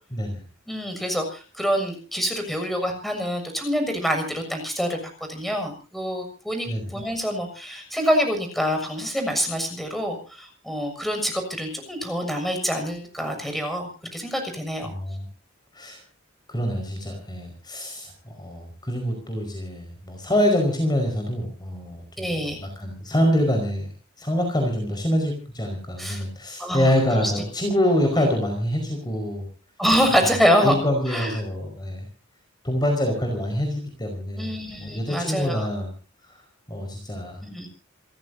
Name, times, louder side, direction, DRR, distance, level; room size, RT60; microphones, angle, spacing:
voice 1, 0.1-0.4 6.7-6.9 14.9-15.3 15.7-16.0 16.5-23.9 24.2-29.5 30.2-30.3 30.6-32.1 32.6-34.5 34.8-35.9 36.7-37.4, equal, 20° left, 3 dB, 5.1 m, -25 dB
voice 2, 0.7-15.0 22.2-22.6 26.0-26.2 26.6-27.3 28.1-28.3 29.8-30.8 31.1-31.4 34.4-35.7 37.4-37.7, equal, ahead, 5 dB, 6.8 m, -26 dB
29.0 x 16.0 x 2.8 m, 0.37 s
head